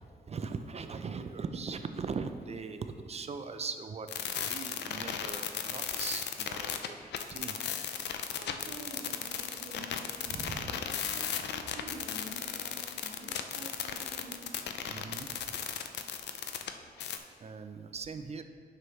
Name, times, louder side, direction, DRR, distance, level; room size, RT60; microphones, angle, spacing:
voice 1, 0.3-4.1 4.4-7.6 10.3-10.8 14.9-15.6 17.4-18.4, right 5 dB, 40° right, 8 dB, 0.4 m, -40 dB
sound 1, 4.1-16.7 17.0-17.2, left 8 dB, 90° left, 0.5 m, -36 dB
voice 2, 8.0-14.4, right 2 dB, 90° right, -7 dB, 1.3 m, -48 dB
9.5 x 6.3 x 3.1 m, 2.2 s
cardioid pair, 105°, 17 cm